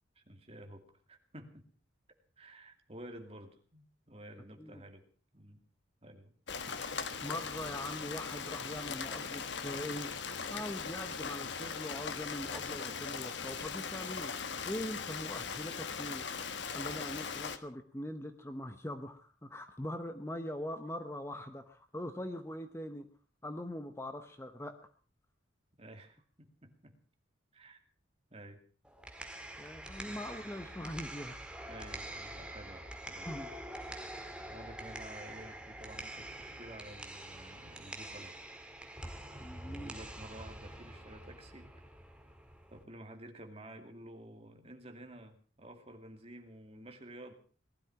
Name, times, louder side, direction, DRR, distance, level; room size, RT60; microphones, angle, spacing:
voice 1, 0.2-1.7 2.4-5.0 5.3-5.6 6.0-6.3 25.8-26.9 27.5-27.8 28.3-28.6 30.0-30.2 31.7-33.3 34.5-38.4 39.7-41.8 42.7-47.3, right 1 dB, 30° right, 5 dB, 2.3 m, -51 dB
Rain, 6.5-17.6, left 5 dB, 60° left, 1.3 m, -39 dB
voice 2, 7.2-10.1 10.5-16.2 16.7-23.1 23.4-24.8 29.6-31.3 33.2-33.5 39.4-39.9, left 1 dB, 15° left, 8 dB, 1.0 m, -42 dB
sound 1, 28.8-42.8, right 1 dB, 5° right, 1.9 m, -46 dB
19.0 x 12.5 x 5.8 m, 0.42 s
head